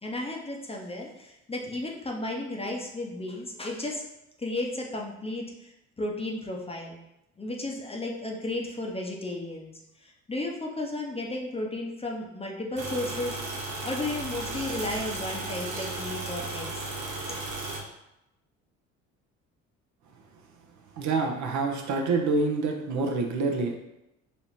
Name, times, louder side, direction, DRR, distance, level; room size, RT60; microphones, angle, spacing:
voice 1, 0.0-4.0 4.4-7.0 7.4-9.7 10.0-13.5 13.8-17.4, left 2 dB, 15° left, 0 dB, 0.7 m, -34 dB
sound 1, 12.8-17.8, right 2 dB, 70° right, 1.2 m, -35 dB
voice 2, 21.0-23.7, right 3 dB, 50° right, 2 dB, 0.7 m, -27 dB
4.0 x 2.9 x 3.0 m, 0.88 s
hypercardioid pair, 55°, 38 cm